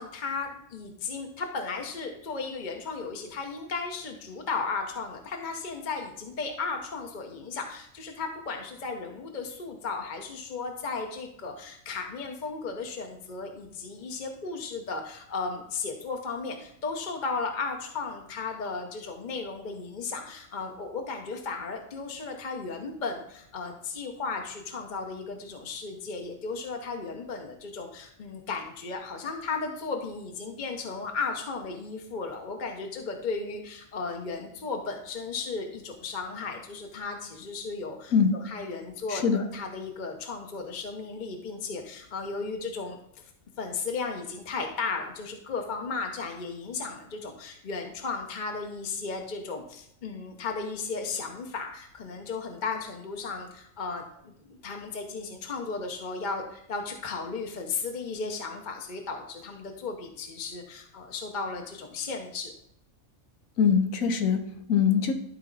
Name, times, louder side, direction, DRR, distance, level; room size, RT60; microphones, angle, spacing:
voice 1, 0.0-43.0 43.6-62.5, left 4 dB, 40° left, 3 dB, 0.8 m, -35 dB
voice 2, 39.1-39.4 63.6-65.1, left 6 dB, 80° left, 8 dB, 1.2 m, -23 dB
12.0 x 4.0 x 3.9 m, 0.72 s
omnidirectional pair, 1.4 m